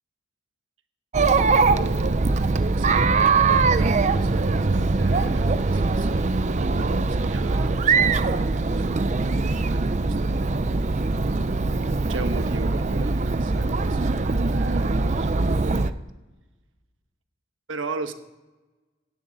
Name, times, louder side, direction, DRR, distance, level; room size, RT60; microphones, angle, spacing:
Chatter, 1.1-15.9, right 3 dB, 40° right, 0.5 m, -22 dB
voice 1, 1.3-2.2 2.8-9.0 9.7-10.5 12.1-16.0 17.7-18.1, right 3 dB, 90° right, 8 dB, 1.1 m, -38 dB
17.0 x 11.0 x 4.0 m, 1.1 s
head